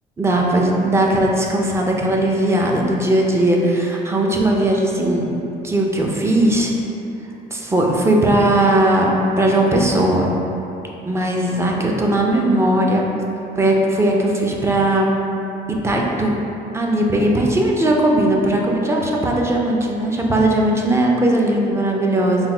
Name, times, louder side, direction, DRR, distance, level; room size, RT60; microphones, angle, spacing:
voice 1, 0.2-5.3 5.6-6.7 7.5-9.1 9.4-10.3 11.0-13.1 13.6-15.1 15.7-16.4 16.7-22.5, right 1 dB, 15° right, -1 dB, 0.5 m, -18 dB
3.9 x 2.1 x 4.3 m, 2.9 s
cardioid pair, 110°, 17 cm